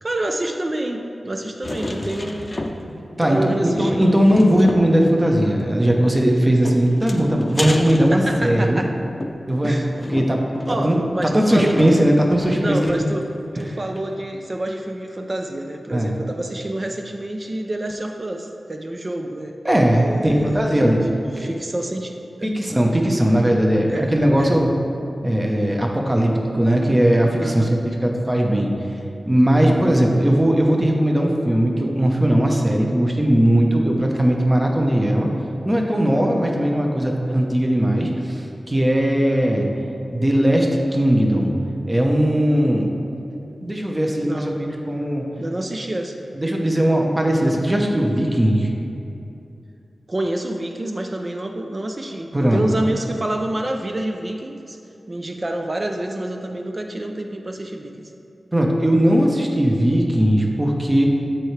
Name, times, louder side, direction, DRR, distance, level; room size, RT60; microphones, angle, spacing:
voice 1, 0.0-2.8 3.2-4.2 8.1-9.0 9.6-9.9 10.7-11.8 12.5-13.3 13.5-19.5 19.9-22.5 23.9-24.1 24.4-24.5 27.4-27.8 44.2-44.7 45.4-46.2 50.1-54.8 55.1-58.1, right 1 dB, 40° right, 4 dB, 0.5 m, -28 dB
sound 1, 1.6-3.1 3.4-3.5 3.8-5.0 6.0-8.8 9.2-13.2 13.6-13.7 14.0-14.1, left 1 dB, 35° left, 0.6 m, -31 dB
voice 2, 3.2-8.8 9.5-10.4 10.7-13.0 15.9-16.1 19.6-21.0 21.4-21.5 22.4-24.7 25.2-27.7 28.0-28.7 29.3-35.3 35.6-39.7 40.1-41.5 41.9-42.9 43.6-45.3 46.3-48.7 52.3-52.6 58.5-61.1, right 1 dB, 25° right, 0 dB, 1.0 m, -18 dB
13.0 x 4.5 x 3.3 m, 2.7 s
cardioid pair, 55°, 0 cm